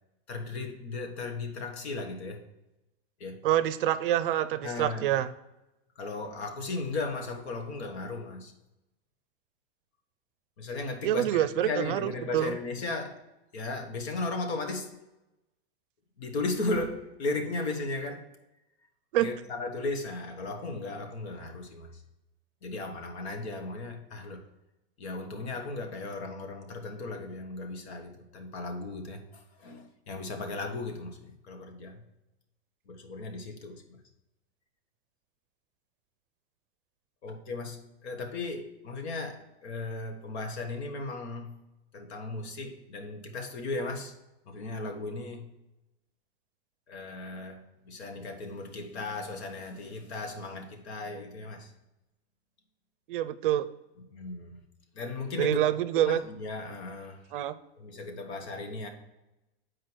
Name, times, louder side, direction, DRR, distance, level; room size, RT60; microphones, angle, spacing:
voice 1, 0.3-2.5 3.2-3.4 4.6-5.1 5.9-8.5 10.6-13.2 13.5-14.9 16.2-18.3 19.2-22.0 22.6-24.5 25.0-32.0 32.9-33.8 37.2-41.5 41.9-44.1 44.4-45.5 46.9-51.7 54.1-54.6 54.9-55.6 55.9-57.2 57.8-58.9, left 3 dB, 85° left, 1.5 m, -36 dB
voice 2, 3.4-5.3 11.0-12.6 19.1-19.3 53.1-53.7 55.4-56.2 57.3-57.5, right 12 dB, 55° right, 0.5 m, -26 dB
8.0 x 4.7 x 4.5 m
supercardioid pair, 180°, 32 cm